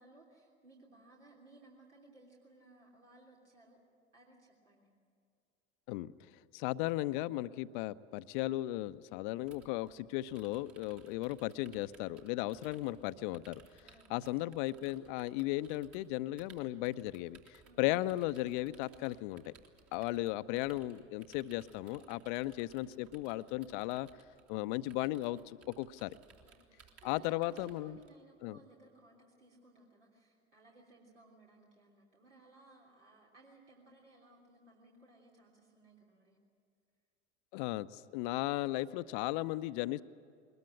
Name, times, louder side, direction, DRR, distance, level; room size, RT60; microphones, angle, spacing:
voice 1, 0.0-3.8 4.1-4.9 13.8-14.5 17.6-17.9 22.3-22.7 26.4-36.4, right 2 dB, 75° right, -3 dB, 3.3 m, -61 dB
voice 2, 6.5-13.6 14.1-17.4 17.8-19.5 19.9-24.1 24.5-26.2 27.0-28.0 28.4-28.6 37.5-40.0, left 17 dB, 45° left, 15 dB, 0.7 m, -36 dB
sound 1, 9.4-28.1, right 6 dB, 40° right, 2.7 m, -63 dB
22.0 x 20.5 x 8.7 m, 2.3 s
figure-of-eight pair, 80°, 36 cm